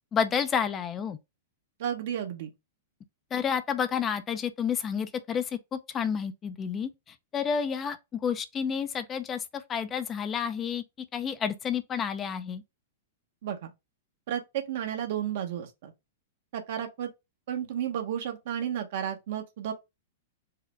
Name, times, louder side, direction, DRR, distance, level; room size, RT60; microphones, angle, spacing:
voice 1, 0.1-1.2 3.3-10.8 11.1-12.6, left 7 dB, 25° left, 0.5 m, -30 dB
voice 2, 1.8-2.5 13.4-13.7 14.3-15.9 16.5-17.1 17.5-19.7, right 10 dB, 60° right, 1.0 m, -32 dB
4.8 x 2.1 x 4.5 m
hypercardioid pair, 110°, 0 cm